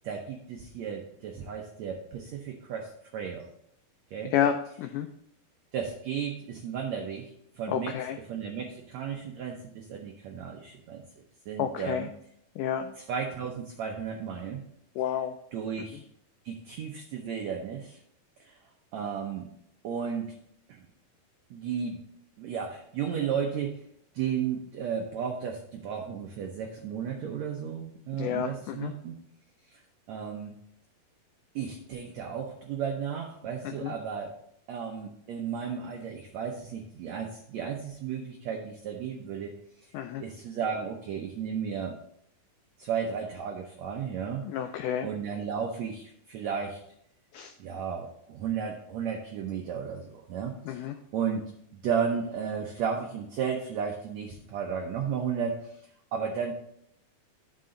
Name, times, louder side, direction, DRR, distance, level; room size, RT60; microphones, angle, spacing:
voice 1, 0.0-3.5 4.1-4.3 5.7-11.0 11.5-12.1 12.9-14.6 15.5-16.0 16.4-18.0 18.4-18.6 18.9-19.5 19.8-20.3 20.7-20.9 21.5-22.0 22.4-23.8 24.1-29.2 29.7-29.8 30.1-30.6 31.5-34.3 34.7-39.9 40.2-42.0 42.8-46.8 47.6-50.8 51.1-51.5 51.8-55.8 56.1-56.5, right 7 dB, 90° right, 3 dB, 1.5 m, -34 dB
voice 2, 4.3-5.1 7.7-8.2 11.6-12.0 12.6-12.9 15.0-15.3 28.2-28.9 33.8-33.9 39.9-40.2 44.5-45.1 47.3-47.5 50.7-50.9, left 9 dB, 90° left, 7 dB, 1.8 m, -30 dB
12.0 x 5.4 x 3.8 m, 0.71 s
omnidirectional pair, 4.3 m